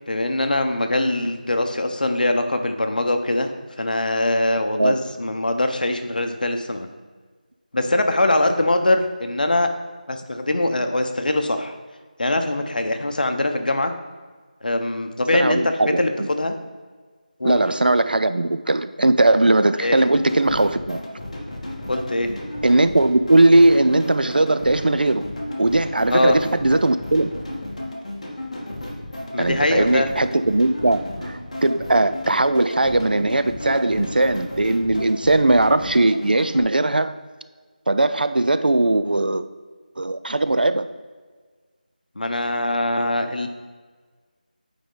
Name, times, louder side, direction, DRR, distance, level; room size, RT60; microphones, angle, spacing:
voice 1, 0.1-3.5 3.8-6.9 7.7-9.7 10.1-11.7 12.2-13.9 14.6-16.5 17.4-17.6 19.8-20.0 21.9-22.3 26.1-26.4 29.3-30.1 42.2-43.5, left 1 dB, 70° left, 6 dB, 0.9 m, -22 dB
voice 2, 15.3-16.3 17.4-21.0 22.6-25.3 25.6-27.4 29.4-37.1 37.9-39.5 40.0-40.9, right 2 dB, 90° right, 12 dB, 0.5 m, -19 dB
sound 1, 20.0-36.6, left 1 dB, 45° left, 1.4 m, -33 dB
8.3 x 5.0 x 3.8 m, 1.5 s
figure-of-eight pair, 175°, 5 cm